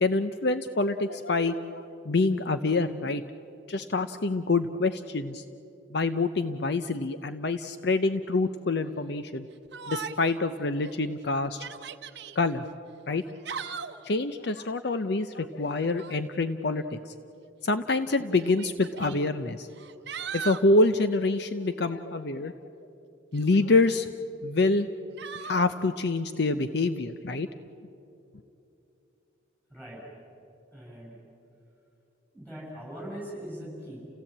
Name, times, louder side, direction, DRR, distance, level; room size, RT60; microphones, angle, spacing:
voice 1, 0.0-3.2 3.7-5.4 5.9-9.5 9.9-11.6 12.4-12.7 13.1-13.2 14.0-17.1 17.6-19.7 20.3-22.5 23.3-24.1 24.4-24.9 25.4-27.5, left 3 dB, 55° left, 10 dB, 0.6 m, -26 dB
Yell, 9.7-10.4 10.8-10.9 11.5-12.4 13.2-14.1 15.8-16.2 17.4-17.5 18.4-19.2 19.7-20.7 23.3-24.0 25.2-25.6, right 6 dB, 60° right, 0.8 m, -39 dB
voice 2, 29.7-30.0 30.7-31.2 32.3-34.0, equal, 10° left, -4 dB, 7.9 m, -41 dB
30.0 x 16.5 x 8.6 m, 2.9 s
head